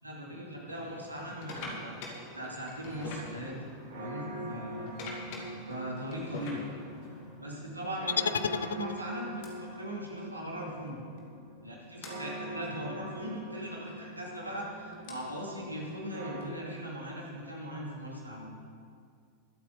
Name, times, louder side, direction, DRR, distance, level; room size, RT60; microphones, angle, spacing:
voice 1, 0.0-2.0 2.3-5.0 5.7-6.6 7.4-11.0 11.6-18.5, equal, 85° right, -3 dB, 2.7 m, -39 dB
sound 1, 0.7-7.5 8.3-8.5 9.4-9.5 10.9-11.0 11.2-11.3 12.0-12.2 13.9-17.1, left 2 dB, 45° left, 2.3 m, -45 dB
sound 2, 3.2-16.4, right 1 dB, 65° right, 2.5 m, -44 dB
sound 3, 8.1-9.4, left 6 dB, 70° left, 0.4 m, -32 dB
22.0 x 8.5 x 4.0 m, 2.2 s
figure-of-eight pair, 90°, 0 cm